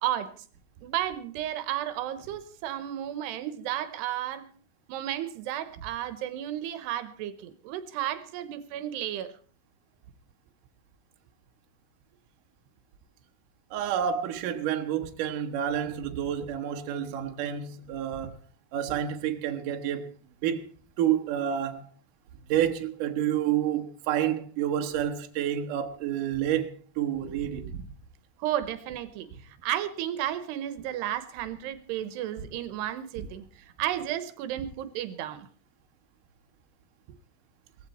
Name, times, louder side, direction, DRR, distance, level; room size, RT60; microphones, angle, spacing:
voice 1, 0.0-0.3 0.8-4.5 4.9-9.3 18.9-19.0 28.4-35.5, right 12 dB, 80° right, 3.1 m, -33 dB
voice 2, 13.7-18.4 18.7-20.1 20.4-20.7 21.0-21.9 22.5-27.8, right 10 dB, 65° right, 2.4 m, -29 dB
18.5 x 15.0 x 4.2 m
omnidirectional pair, 4.8 m